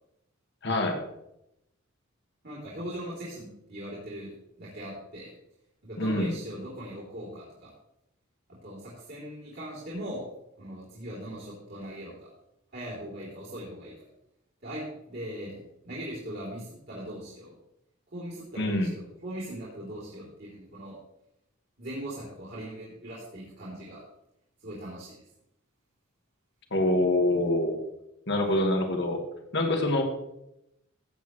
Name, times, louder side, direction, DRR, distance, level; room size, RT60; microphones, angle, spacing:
voice 1, 0.6-1.0 6.0-6.4 18.6-18.9 26.7-27.8 28.3-29.2 29.5-30.0, left 1 dB, 60° left, 4 dB, 1.8 m, -25 dB
voice 2, 2.4-4.3 4.6-5.3 5.8-7.7 8.5-10.2 10.6-12.1 12.7-13.9 14.6-15.6 15.8-17.5 18.1-18.9 19.2-21.0 21.8-24.0 24.6-25.2, right 1 dB, 55° right, -8 dB, 3.3 m, -39 dB
15.0 x 8.5 x 3.1 m, 0.84 s
head